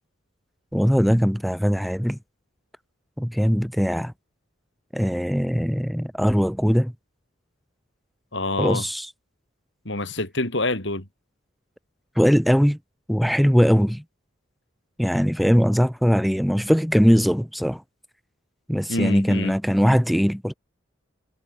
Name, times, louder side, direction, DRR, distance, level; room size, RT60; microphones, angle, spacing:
voice 1, 0.7-2.2 3.2-4.1 4.9-6.9 8.6-9.1 12.2-12.8 13.1-14.0 15.0-17.8 18.7-20.5, equal, ahead, 1.1 m, -20 dB
voice 2, 8.3-8.8 9.9-11.0 18.9-19.5, left 2 dB, 60° left, 4.2 m, -26 dB
head